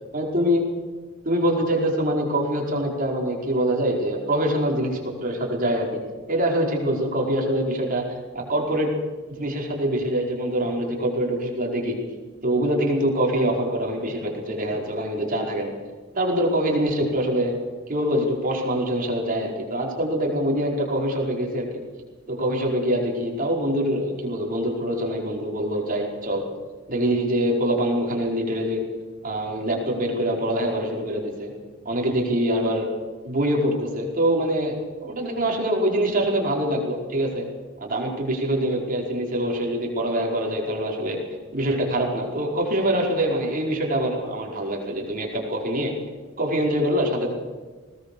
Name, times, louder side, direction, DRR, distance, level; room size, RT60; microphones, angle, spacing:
voice 1, 0.1-0.6 1.2-5.9 6.3-8.1 8.3-8.9 9.3-12.0 12.4-15.7 16.1-17.6 17.9-21.7 22.3-26.4 26.9-28.8 29.2-31.5 31.8-32.8 33.2-37.5 37.8-41.2 41.5-45.9 46.4-47.3, right 1 dB, 40° right, -1 dB, 4.9 m, -24 dB
20.5 x 19.0 x 7.0 m, 1.4 s
head